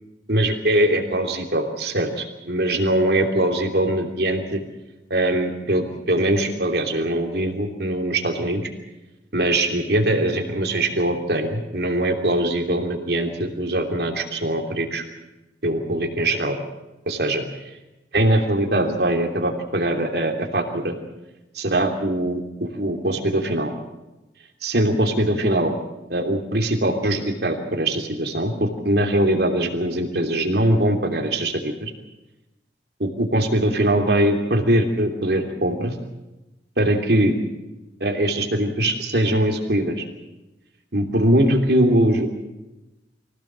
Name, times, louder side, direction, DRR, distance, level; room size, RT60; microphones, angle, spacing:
voice 1, 0.3-4.6 5.1-8.7 9.3-15.0 15.6-16.6 17.1-17.4 18.1-21.0 21.5-23.7 24.6-25.7 26.1-31.9 33.0-35.9 36.8-37.3 38.0-40.0 40.9-42.3, right 1 dB, 65° right, 3 dB, 3.1 m, -22 dB
24.5 x 17.0 x 7.6 m, 1.0 s
head